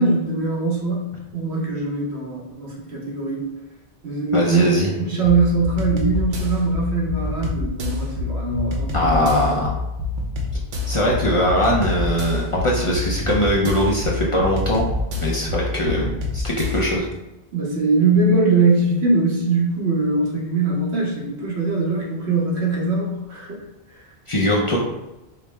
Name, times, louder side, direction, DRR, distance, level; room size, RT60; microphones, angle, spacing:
voice 1, 0.0-3.5 4.0-9.5 17.5-23.6 23.9-24.0, right 3 dB, 85° right, -4 dB, 1.3 m, -22 dB
voice 2, 4.3-4.9 8.9-9.8 10.9-14.9 15.2-17.1 24.3-24.8, equal, 40° left, -4 dB, 0.5 m, -21 dB
sound 1, 5.2-16.9, left 3 dB, 55° right, 0.7 m, -27 dB
4.6 x 2.1 x 3.3 m, 0.99 s
omnidirectional pair, 1.1 m